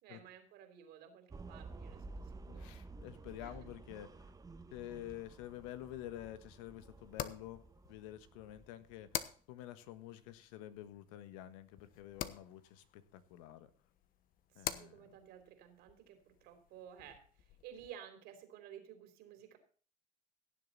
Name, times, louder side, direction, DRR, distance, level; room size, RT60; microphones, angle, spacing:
voice 1, 0.0-2.7 3.4-3.6 14.5-19.6, right 9 dB, 75° right, 7 dB, 3.5 m, -54 dB
sound 1, 1.3-9.3, right 3 dB, 20° right, 1.2 m, -52 dB
voice 2, 2.5-4.3 4.7-13.7 14.5-15.0, left 13 dB, 90° left, 12 dB, 1.4 m, -49 dB
sound 2, 5.0-17.9, left 10 dB, 60° left, 1.2 m, -49 dB
17.0 x 7.7 x 4.1 m, 0.43 s
supercardioid pair, 90°, 17 cm